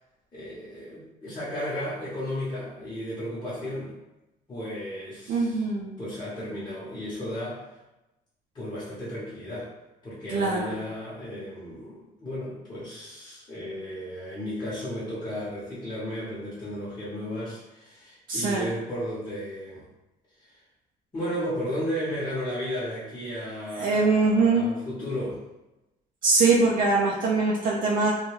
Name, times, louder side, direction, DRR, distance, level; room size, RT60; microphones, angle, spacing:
voice 1, 0.3-3.9 4.5-5.7 6.0-7.7 8.5-9.7 10.0-19.8 20.4-20.6 21.1-25.4, equal, 25° left, -11 dB, 0.9 m, -34 dB
voice 2, 5.3-6.0 10.3-10.7 18.3-18.7 23.8-24.7 26.2-28.1, right 3 dB, 55° right, -4 dB, 0.4 m, -22 dB
2.3 x 2.1 x 3.1 m, 0.98 s
cardioid pair, 110°, 17 cm